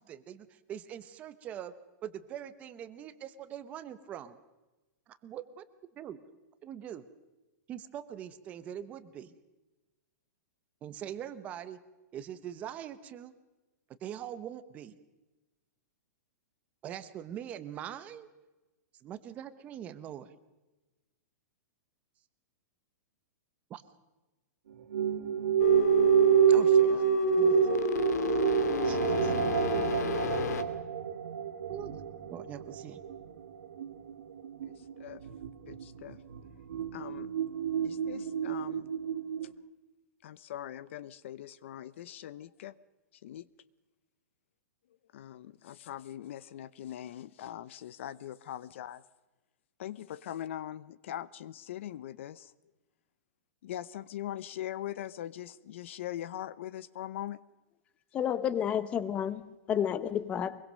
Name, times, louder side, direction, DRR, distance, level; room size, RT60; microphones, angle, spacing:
voice 1, 0.0-1.7 2.0-4.4 5.1-5.6 6.0-6.2 6.6-7.0 7.7-9.3 10.8-11.8 12.1-13.3 14.0-15.0 16.8-18.3 19.0-20.3 23.7-23.8 26.5-27.0 27.4-27.7 28.8-29.3 31.7-31.9 32.3-33.0, right 10 dB, 15° right, 12 dB, 0.9 m, -42 dB
sound 1, 24.9-39.5, right 9 dB, 70° right, 2.4 m, -28 dB
sound 2, 25.6-30.6, left 8 dB, 70° left, 2.4 m, -31 dB
voice 2, 34.6-35.2 35.7-36.2 36.9-37.3 37.8-38.9 40.2-42.7 43.2-43.5 45.1-49.0 49.8-52.5 53.6-57.4, left 12 dB, 45° left, 19 dB, 0.7 m, -41 dB
voice 3, 58.1-59.4 59.7-60.6, left 9 dB, 15° left, 16 dB, 0.8 m, -30 dB
24.0 x 22.0 x 6.4 m, 1.1 s
supercardioid pair, 180°, 9 cm